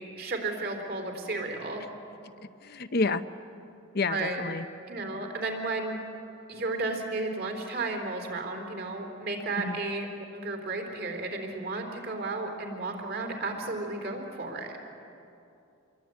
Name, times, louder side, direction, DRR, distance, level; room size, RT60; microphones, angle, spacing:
voice 1, 0.0-1.8 4.1-4.4 4.9-6.0 6.5-10.1 10.3-14.7, right 3 dB, 50° right, 3 dB, 4.3 m, -33 dB
voice 2, 2.6-3.2 3.9-4.7 9.6-9.8, left 3 dB, 50° left, 11 dB, 0.8 m, -29 dB
27.5 x 22.5 x 9.5 m, 2.7 s
head